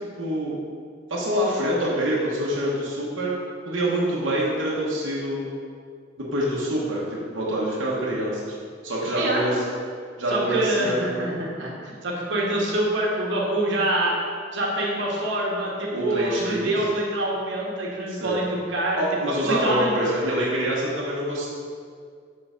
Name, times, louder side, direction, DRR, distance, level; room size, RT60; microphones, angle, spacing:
voice 1, 0.2-0.6 1.1-3.3 3.7-5.4 6.2-8.6 8.8-9.5 10.2-11.3 15.9-16.7 18.1-18.4 19.0-21.5, right 1 dB, 85° right, -5 dB, 1.1 m, -26 dB
voice 2, 9.2-9.6 10.3-14.1 14.5-19.0 19.4-19.9, right 1 dB, 65° right, -4 dB, 1.2 m, -25 dB
6.5 x 3.8 x 5.0 m, 2.1 s
head